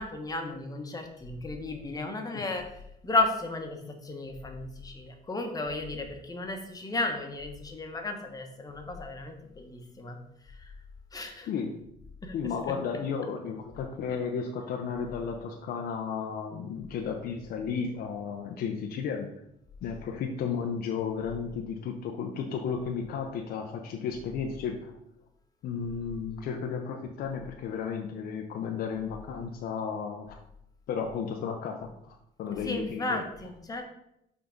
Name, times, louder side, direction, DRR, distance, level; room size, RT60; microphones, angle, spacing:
voice 1, 0.0-2.6 3.0-10.2 11.1-11.5 12.2-12.3 32.6-33.8, left 2 dB, 20° left, 3 dB, 1.2 m, -33 dB
voice 2, 12.3-19.3 19.8-24.9 25.6-30.4 30.9-33.2, left 6 dB, 65° left, 2 dB, 0.7 m, -33 dB
5.9 x 3.8 x 5.2 m, 0.79 s
cardioid pair, 110°, 17 cm